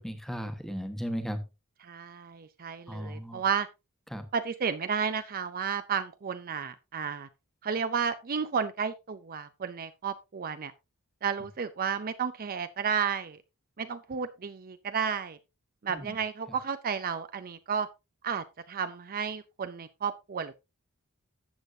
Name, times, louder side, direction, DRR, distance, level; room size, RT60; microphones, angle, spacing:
voice 1, 0.0-1.4 2.9-3.4 4.1-4.2 15.9-16.1, equal, ahead, 1.3 m, -36 dB
voice 2, 1.8-3.7 4.3-7.3 7.6-10.7 11.2-13.4 13.8-15.4 15.8-17.9 18.2-20.5, right 6 dB, 40° right, 0.5 m, -32 dB
13.0 x 8.1 x 2.6 m
head